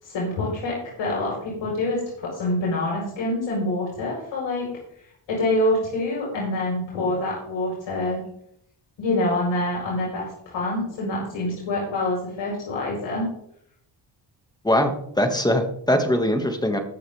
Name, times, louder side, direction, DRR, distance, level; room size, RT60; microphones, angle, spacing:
voice 1, 0.0-4.7 5.3-8.2 9.0-13.3, left 1 dB, 80° left, -4 dB, 4.9 m, -26 dB
voice 2, 14.6-16.8, left 1 dB, 10° left, 5 dB, 2.3 m, -22 dB
19.5 x 6.9 x 3.7 m, 0.69 s
cardioid pair, 85°, 44 cm